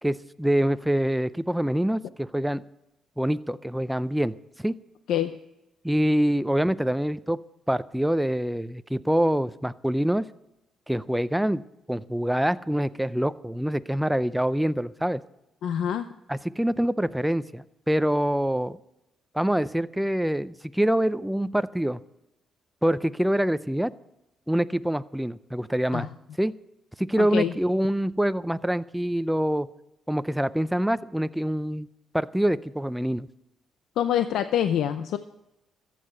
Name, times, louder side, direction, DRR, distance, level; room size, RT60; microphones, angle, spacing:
voice 1, 0.0-2.6 3.2-4.7 5.8-7.4 7.7-10.3 10.9-11.6 11.9-15.2 16.3-18.8 19.3-22.0 22.8-23.9 24.5-26.1 26.4-26.5 27.0-29.7 30.1-31.9 32.1-33.3, right 1 dB, 5° right, 14 dB, 0.5 m, -25 dB
voice 2, 15.6-16.1 25.9-26.1 27.2-27.5 34.0-35.2, left 10 dB, 80° left, 10 dB, 0.6 m, -25 dB
14.0 x 7.7 x 8.1 m, 0.92 s
cardioid pair, 90°, 0 cm